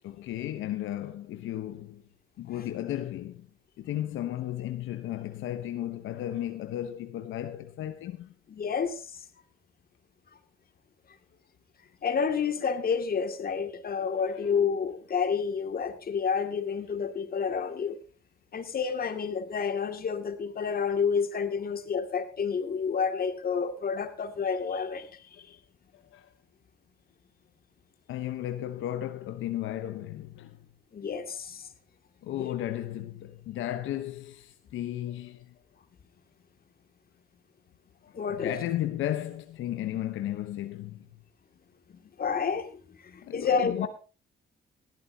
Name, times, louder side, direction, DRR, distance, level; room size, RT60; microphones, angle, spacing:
voice 1, 0.0-2.0 2.4-3.5 3.8-8.3 14.3-14.4 25.9-26.3 28.1-30.7 32.2-35.5 38.3-41.2 43.2-43.9, left 12 dB, 85° left, 1.0 m, -34 dB
voice 2, 8.5-9.0 12.0-18.0 18.5-25.1 30.9-31.7 32.4-32.5 38.1-38.6 42.2-43.9, left 6 dB, 50° left, 2.3 m, -29 dB
18.5 x 13.5 x 2.8 m
cardioid pair, 90°, 20 cm